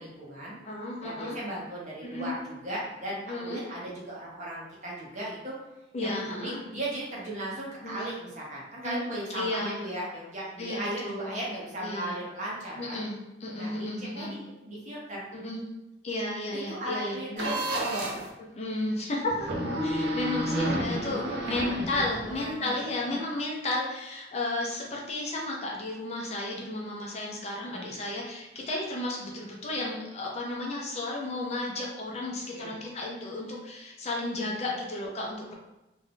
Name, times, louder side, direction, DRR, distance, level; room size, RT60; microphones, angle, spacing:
voice 1, 0.0-0.6 1.0-5.5 6.0-13.0 13.6-15.2 16.5-18.2 21.1-21.7 21.9-22.7 23.0-23.2 27.6-27.9 32.5-32.7, right 1 dB, 40° right, -6 dB, 1.0 m, -37 dB
voice 2, 0.6-1.4 2.0-2.4 3.3-3.6 5.9-6.6 7.8-8.0 8.8-9.0 9.3-9.8 10.6-11.4 11.8-12.2 12.8-13.1 13.4-14.3 15.3-15.6 16.0-17.5 18.5-19.5 19.8-21.2 21.5-35.5, left 2 dB, 35° left, -2 dB, 0.5 m, -33 dB
sound 1, 17.4-18.3 19.4-22.5, equal, 70° right, 0.6 m, -31 dB
2.6 x 2.4 x 3.5 m, 0.98 s
head